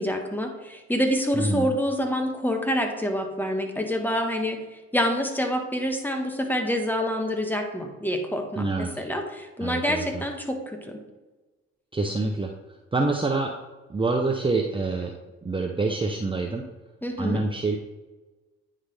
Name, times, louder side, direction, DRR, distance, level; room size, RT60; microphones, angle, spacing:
voice 1, 0.0-4.6 4.9-8.7 9.0-11.0 17.0-17.4, equal, 5° left, 3 dB, 1.3 m, -27 dB
voice 2, 1.3-1.7 8.5-9.0 9.6-10.2 11.9-12.5 12.9-13.5 13.9-15.1 15.4-16.6 17.2-17.8, right 3 dB, 15° right, 2 dB, 0.7 m, -26 dB
9.4 x 3.8 x 3.4 m, 1.2 s
supercardioid pair, 65°, 30 cm